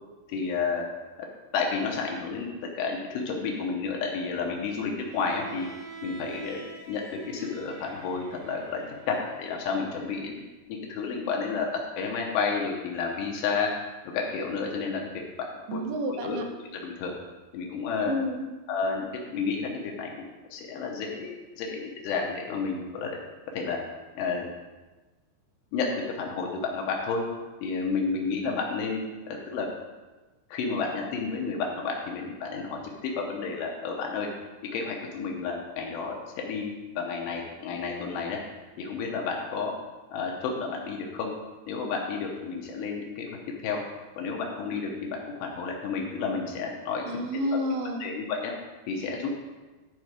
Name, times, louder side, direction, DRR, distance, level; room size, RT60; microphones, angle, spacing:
voice 1, 0.3-0.8 1.5-2.5 2.8-5.7 6.0-6.6 6.9-10.4 10.7-11.7 12.0-13.7 14.1-15.0 15.4-15.8 16.1-16.4 16.7-17.1 17.5-18.1 18.7-19.1 19.3-19.7 20.0-20.1 20.5-23.2 23.5-23.8 24.2-24.5 25.7-27.2 27.6-29.7 30.5-34.3 34.7-38.4 38.8-39.7 40.1-41.4 41.7-43.3 43.6-43.8 44.2-47.1 47.5-47.6 48.0-48.5 48.9-49.3, left 5 dB, 75° left, 0 dB, 2.9 m, -31 dB
Bowed string instrument, 5.0-10.3, right 4 dB, 55° right, 2.7 m, -45 dB
voice 2, 15.7-16.4 18.1-18.5 47.1-48.1, equal, 75° right, 4 dB, 2.4 m, -30 dB
11.0 x 4.7 x 4.8 m, 1.2 s
omnidirectional pair, 5.2 m